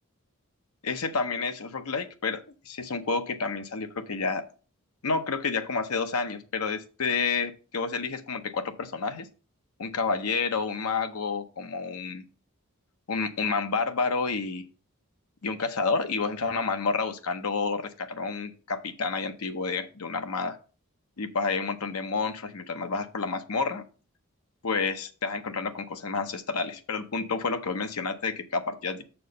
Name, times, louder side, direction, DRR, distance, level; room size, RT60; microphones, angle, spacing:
voice 1, 0.8-4.5 5.0-9.3 9.8-12.2 13.1-14.6 15.4-20.6 21.2-23.8 24.6-29.0, left 4 dB, 90° left, 0.8 m, -29 dB
6.6 x 4.6 x 6.4 m
head